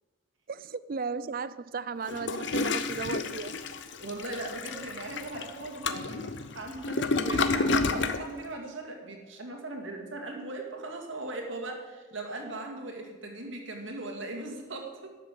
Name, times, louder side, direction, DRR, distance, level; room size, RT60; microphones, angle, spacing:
voice 1, 0.5-3.6, right 5 dB, 45° right, 16 dB, 0.4 m, -35 dB
Toilet flush, 2.0-8.2, left 3 dB, 60° left, 0.7 m, -30 dB
voice 2, 4.0-15.1, right 2 dB, 70° right, 2 dB, 2.1 m, -39 dB
12.5 x 6.7 x 7.5 m, 1.3 s
head